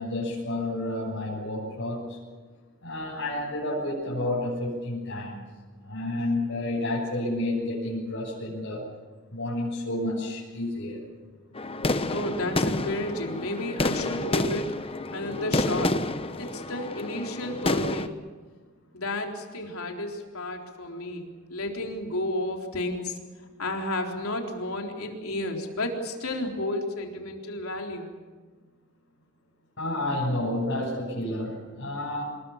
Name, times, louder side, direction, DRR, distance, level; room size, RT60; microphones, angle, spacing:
voice 1, 0.0-2.2 2.8-5.4 5.8-8.9 9.3-11.0 29.8-32.2, left 1 dB, 60° left, -7 dB, 7.8 m, -30 dB
sound 1, 11.6-18.1, left 2 dB, 25° left, 0.9 m, -29 dB
voice 2, 12.1-14.7 15.1-16.0 16.4-18.2 18.9-23.2 23.6-28.1, left 1 dB, 75° left, 2 dB, 3.9 m, -32 dB
26.5 x 21.5 x 7.4 m, 1.4 s
head